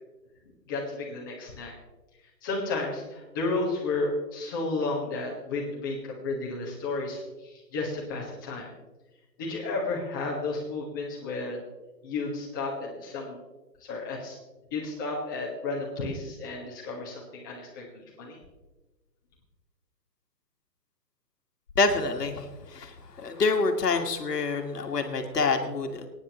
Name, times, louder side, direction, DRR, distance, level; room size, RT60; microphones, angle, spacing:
voice 1, 0.7-1.7 2.4-8.7 9.4-11.7 12.0-13.4 13.8-14.4 14.7-18.4, left 3 dB, 15° left, -4 dB, 1.5 m, -32 dB
voice 2, 21.7-26.1, left 3 dB, 70° left, 5 dB, 1.7 m, -27 dB
25.0 x 9.7 x 3.0 m, 1.1 s
hypercardioid pair, 175°, 49 cm